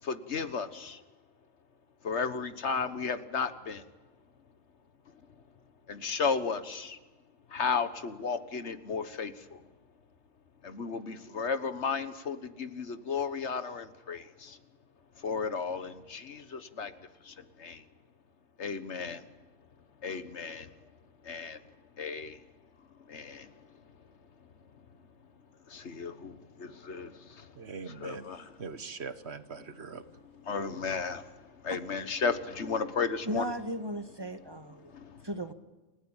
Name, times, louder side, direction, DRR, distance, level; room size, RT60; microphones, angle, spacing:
voice 1, 0.0-1.0 2.0-3.8 5.9-7.0 7.5-9.6 10.6-14.6 15.2-16.9 17.2-17.8 18.6-19.3 20.0-20.7 21.2-21.6 22.0-22.4 23.1-23.5 25.7-27.5 27.9-28.6 30.4-33.5 34.8-35.2, left 5 dB, 75° left, 11 dB, 1.7 m, -34 dB
voice 2, 27.5-28.3 28.6-30.0, right 5 dB, 70° right, 11 dB, 1.6 m, -41 dB
voice 3, 33.2-34.9 35.2-35.5, right 1 dB, 20° right, 8 dB, 1.7 m, -36 dB
29.5 x 17.0 x 9.0 m, 1.2 s
omnidirectional pair, 1.2 m